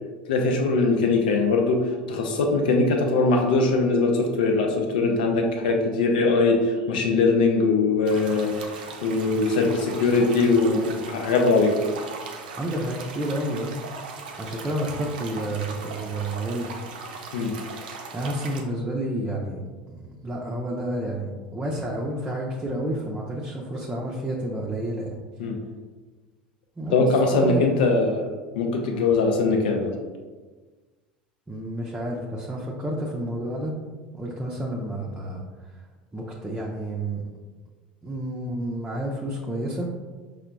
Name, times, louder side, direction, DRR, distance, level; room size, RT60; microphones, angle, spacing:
voice 1, 0.3-1.8 2.1-8.5 9.0-10.8 11.1-11.7 17.3-17.5 25.4-25.6 26.9-28.2 28.5-29.9, left 3 dB, 70° left, 3 dB, 0.5 m, -21 dB
sound 1, 8.0-18.6, right 4 dB, 75° right, 0.5 m, -39 dB
voice 2, 10.0-11.0 12.3-13.8 14.1-16.7 18.1-25.2 26.8-28.1 28.9-29.1 31.5-33.7 34.1-35.9 36.1-37.2 38.0-39.9, right 1 dB, 15° right, -3 dB, 0.5 m, -30 dB
5.6 x 2.2 x 2.2 m, 1.3 s
hypercardioid pair, 75°, 5 cm